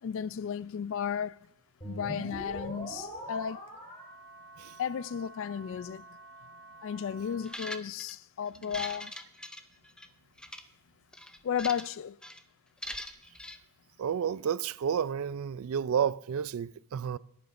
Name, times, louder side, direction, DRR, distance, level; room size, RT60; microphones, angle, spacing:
voice 1, 0.0-1.5 1.8-3.7 4.8-6.1 6.8-9.2 11.4-12.2, left 8 dB, 60° left, 0.3 m, -34 dB
sound 1, 1.8-7.5, right 1 dB, 25° left, 5.1 m, -44 dB
sound 2, 7.5-8.1 8.6-10.1 10.4-10.6 11.1-12.0 12.2-12.4 12.8-13.6, left 1 dB, 5° left, 0.5 m, -41 dB
voice 2, 14.0-17.2, right 8 dB, 65° right, 0.4 m, -31 dB
21.5 x 10.5 x 2.6 m
head